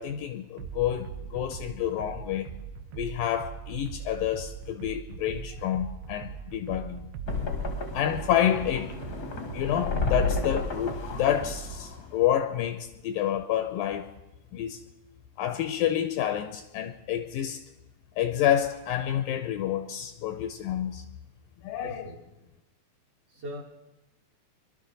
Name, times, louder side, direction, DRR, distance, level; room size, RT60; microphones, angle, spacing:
voice 1, 0.0-2.5 3.0-7.0 7.9-9.0 9.5-14.1 14.5-14.8 15.4-17.6 18.2-21.0 21.6-22.1, left 10 dB, 80° left, 2.1 m, -28 dB
sound 1, 0.6-11.8, right 7 dB, 80° right, 2.4 m, -41 dB
sound 2, 7.3-12.3, left 3 dB, 60° left, 0.9 m, -32 dB
voice 2, 21.8-22.2 23.3-23.6, equal, 55° right, 1.9 m, -39 dB
23.0 x 12.0 x 4.0 m
omnidirectional pair, 4.4 m